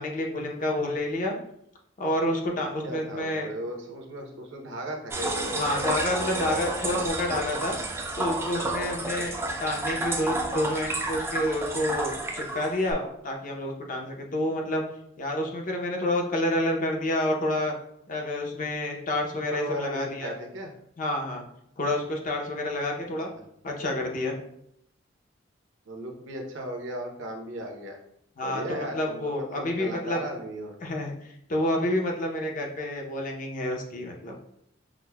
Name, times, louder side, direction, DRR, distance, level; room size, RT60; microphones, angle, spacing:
voice 1, 0.0-1.3 2.0-3.5 5.5-7.8 8.2-9.3 9.6-14.8 15.2-17.7 18.1-20.3 21.0-21.4 21.8-23.3 23.6-24.3 28.4-30.2 30.8-34.4, left 1 dB, 40° left, 1 dB, 0.6 m, -29 dB
voice 2, 2.8-5.8 9.1-9.2 19.5-20.7 25.9-28.0 28.4-30.8, right 1 dB, 65° right, 2 dB, 0.7 m, -36 dB
sound 1, 5.1-12.9, right 2 dB, 10° right, 0.3 m, -30 dB
5.8 x 2.0 x 2.2 m, 0.74 s
head